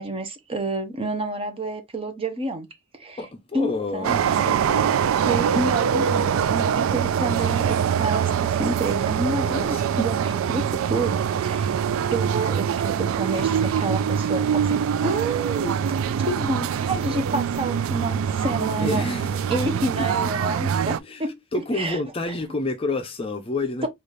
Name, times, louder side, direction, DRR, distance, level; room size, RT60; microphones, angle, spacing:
voice 1, 0.0-2.7 2.9-3.2 3.5-4.3 5.3-11.7 12.1-15.8 16.2-19.1 19.5-21.4 21.7-22.0 22.2-22.4 23.8-23.9, right 2 dB, 25° right, 0.7 m, -29 dB
voice 2, 3.2-5.0 9.4-10.0 18.8-19.5 19.9-20.3 20.9-21.3 21.5-23.9, left 2 dB, 25° left, 0.5 m, -29 dB
sound 1, 4.0-21.0, right 8 dB, 75° right, 0.3 m, -24 dB
4.0 x 2.5 x 3.1 m
head